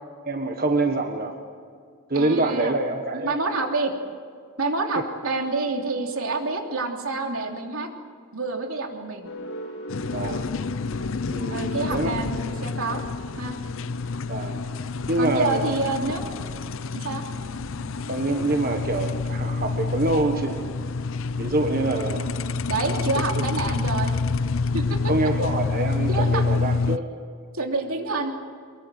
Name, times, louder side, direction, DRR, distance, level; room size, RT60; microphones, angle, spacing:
voice 1, 0.3-1.4 2.1-3.4 10.0-10.5 11.3-12.1 14.3-14.6 15.1-15.8 18.1-20.6 21.4-22.3 22.9-23.4 25.0-27.1, right 2 dB, 40° right, 4 dB, 1.5 m, -26 dB
voice 2, 2.1-2.8 3.1-3.9 4.6-7.9 8.3-9.3 11.5-13.0 13.4-13.6 15.2-16.3 16.9-17.2 22.7-24.1 24.7-24.9 26.1-26.4 27.5-28.3, right 3 dB, 75° right, 2 dB, 3.1 m, -27 dB
sound 1, 9.2-22.6, equal, 85° left, 4.1 m, -41 dB
sound 2, 9.9-27.0, left 4 dB, 65° left, 0.6 m, -28 dB
24.0 x 22.5 x 7.8 m, 2.1 s
head